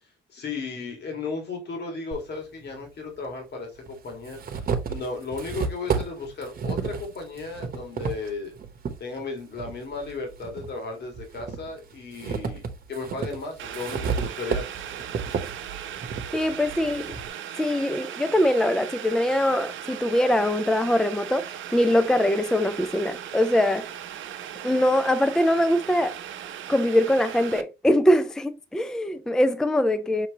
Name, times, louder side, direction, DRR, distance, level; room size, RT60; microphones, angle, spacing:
voice 1, 0.3-8.5 9.0-12.6 12.9-14.7, left 3 dB, 60° left, 2.1 m, -35 dB
sound 1, 2.1-2.2 3.3-3.4 3.9-9.0 9.5-10.7 11.1-17.3, right 5 dB, 50° right, 1.0 m, -32 dB
Boiling, 13.6-27.6, right 10 dB, 75° right, 0.7 m, -38 dB
voice 2, 16.3-17.2 17.6-23.9 24.6-26.2 26.7-30.3, left 1 dB, 5° left, 0.4 m, -22 dB
5.9 x 2.9 x 2.9 m
cardioid pair, 90°, 20 cm